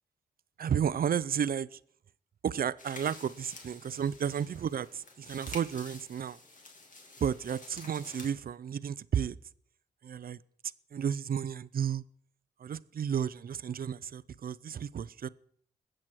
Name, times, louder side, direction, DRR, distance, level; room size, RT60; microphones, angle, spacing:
voice 1, 0.6-1.8 2.4-6.4 7.2-9.4 10.0-10.4 10.9-12.0 12.6-15.3, right 8 dB, 55° right, 0.6 m, -32 dB
sound 1, 2.8-8.3, left 2 dB, 45° left, 2.7 m, -49 dB
21.5 x 7.7 x 4.8 m
supercardioid pair, 50°, 18 cm